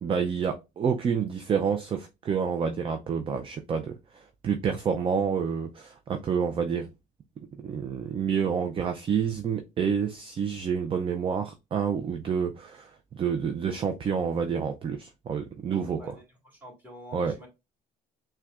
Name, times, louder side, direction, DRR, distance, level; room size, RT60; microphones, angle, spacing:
voice 1, 0.0-6.9 7.6-12.9 13.2-16.0 17.1-17.3, right 6 dB, 30° right, 0.4 m, -28 dB
voice 2, 16.0-17.5, equal, 10° right, 1.7 m, -47 dB
5.7 x 2.2 x 2.4 m
cardioid pair, 110°, 17 cm